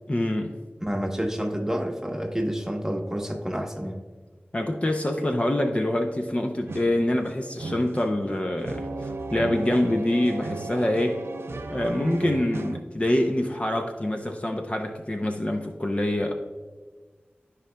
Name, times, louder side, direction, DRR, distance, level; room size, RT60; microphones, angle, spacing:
voice 1, 0.1-0.6 4.5-11.2 11.7-16.3, left 1 dB, 30° left, 3 dB, 0.6 m, -25 dB
voice 2, 0.8-4.0, equal, 10° right, 2 dB, 1.1 m, -29 dB
sound 1, 6.7-12.8, right 3 dB, 90° right, 0.4 m, -35 dB
13.5 x 5.0 x 2.3 m, 1.4 s
wide cardioid pair, 60°, 4 cm